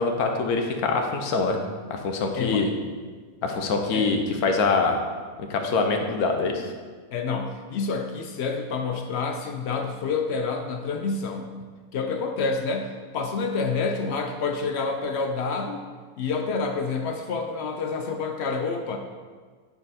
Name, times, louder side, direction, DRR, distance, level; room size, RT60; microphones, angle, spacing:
voice 1, 0.0-1.6 1.9-2.7 3.4-5.0 5.4-6.7, left 4 dB, 90° left, 4 dB, 1.3 m, -24 dB
voice 2, 7.1-11.5 11.9-15.8 16.2-19.0, left 4 dB, 65° left, 5 dB, 0.7 m, -28 dB
8.4 x 3.8 x 4.1 m, 1.5 s
omnidirectional pair, 1.5 m